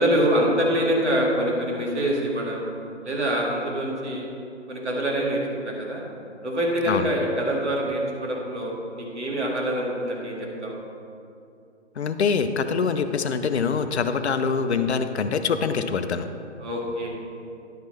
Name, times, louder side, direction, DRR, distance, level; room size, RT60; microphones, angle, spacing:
voice 1, 0.0-2.6 3.0-4.3 4.7-5.4 5.7-6.0 6.4-10.7 16.6-17.1, equal, 70° right, -2 dB, 2.2 m, -25 dB
voice 2, 12.0-16.3, left 5 dB, 65° left, 8 dB, 0.6 m, -24 dB
10.5 x 6.1 x 4.3 m, 2.6 s
figure-of-eight pair, 140°, 36 cm